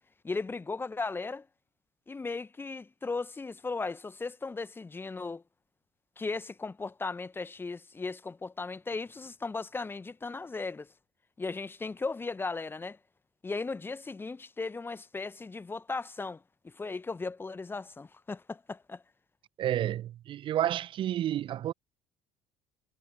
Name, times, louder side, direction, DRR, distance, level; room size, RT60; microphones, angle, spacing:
voice 1, 0.2-1.5 2.1-5.4 6.2-10.9 11.4-13.0 13.4-19.0, left 3 dB, 15° left, 1.2 m, -36 dB
voice 2, 19.6-21.7, right 12 dB, 40° right, 0.9 m, -30 dB
figure-of-eight pair, 60°, 13 cm